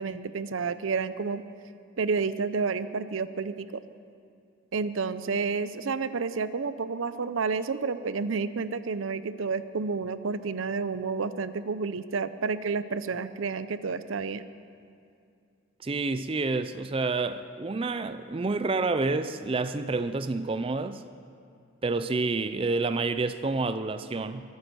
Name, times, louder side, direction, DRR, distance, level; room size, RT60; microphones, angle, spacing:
voice 1, 0.0-1.4 2.0-3.8 4.7-14.4, right 4 dB, 80° right, 13 dB, 0.6 m, -30 dB
voice 2, 15.8-21.0 21.8-24.4, right 3 dB, 25° right, 11 dB, 0.4 m, -28 dB
22.5 x 9.6 x 6.2 m, 2.5 s
head